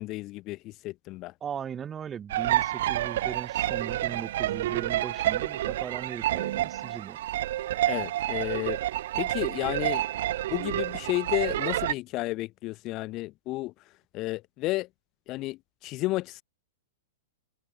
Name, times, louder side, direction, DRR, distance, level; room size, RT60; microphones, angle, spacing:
voice 1, 0.0-1.3 7.8-8.8 9.1-10.0 10.5-13.7 14.1-14.9 15.3-16.4, left 19 dB, 35° left, 0.4 m, -32 dB
voice 2, 1.4-7.2, right 8 dB, 20° right, 2.5 m, -38 dB
sound 1, 2.3-11.9, right 14 dB, 60° right, 0.4 m, -29 dB
hypercardioid pair, 140°, 0 cm